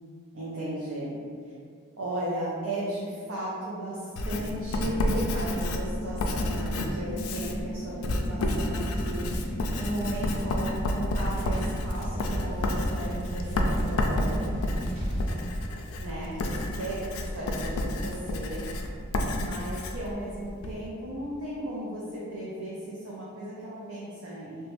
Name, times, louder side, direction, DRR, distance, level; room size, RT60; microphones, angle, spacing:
voice 1, 0.3-1.2 2.0-14.6 16.0-18.7 19.3-24.7, right 1 dB, 75° right, -7 dB, 0.5 m, -36 dB
sound 1, 4.1-14.1, equal, 10° right, 0.4 m, -41 dB
Writing, 4.2-20.8, left 1 dB, 85° left, 0.3 m, -30 dB
sound 2, 8.9-15.3, right 1 dB, 30° right, 1.4 m, -37 dB
3.0 x 2.2 x 3.0 m, 2.2 s
head